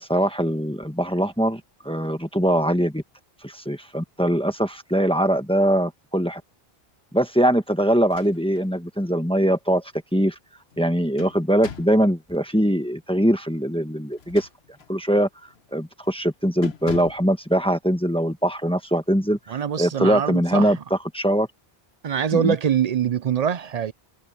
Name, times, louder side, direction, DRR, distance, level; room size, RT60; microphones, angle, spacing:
voice 1, 0.0-3.0 3.4-6.4 7.1-9.8 10.1-10.3 10.8-14.5 14.9-15.3 15.7-20.8 21.1-21.5 22.3-22.5, equal, 5° left, 1.3 m, -22 dB
sound 1, 8.0-8.7 9.2-9.3 10.7-12.1 14.1-15.0 15.5-15.7 16.0-16.3 16.6-17.3, left 7 dB, 80° left, 1.4 m, -40 dB
voice 2, 19.5-20.8 22.0-23.9, right 8 dB, 50° right, 0.5 m, -24 dB
omnidirectional pair, 1.0 m